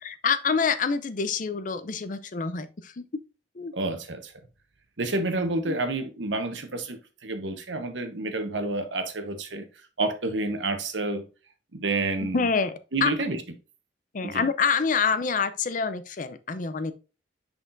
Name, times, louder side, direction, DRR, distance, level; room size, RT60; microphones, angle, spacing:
voice 1, 0.0-3.1 3.6-3.7 5.7-5.8 12.3-12.7 13.0-13.1 14.1-16.9, left 5 dB, 45° left, 0.6 m, -26 dB
voice 2, 3.7-4.3 5.0-9.7 10.0-11.3 11.7-12.5 12.9-13.4 14.2-14.5, right 2 dB, 90° right, 1.1 m, -29 dB
6.4 x 5.7 x 2.6 m
head